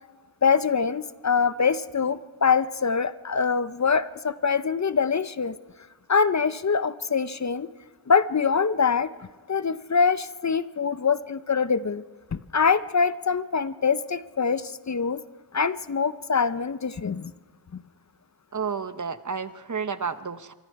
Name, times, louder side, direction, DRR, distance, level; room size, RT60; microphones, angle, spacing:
voice 1, 0.4-5.5 6.1-7.7 8.1-9.1 9.5-12.0 12.3-15.2 15.5-17.3 17.7-17.8, left 5 dB, 45° left, 14 dB, 0.6 m, -24 dB
voice 2, 18.5-20.5, right 6 dB, 45° right, 12 dB, 0.9 m, -31 dB
25.0 x 23.5 x 4.7 m, 1.3 s
wide cardioid pair, 85°, 41 cm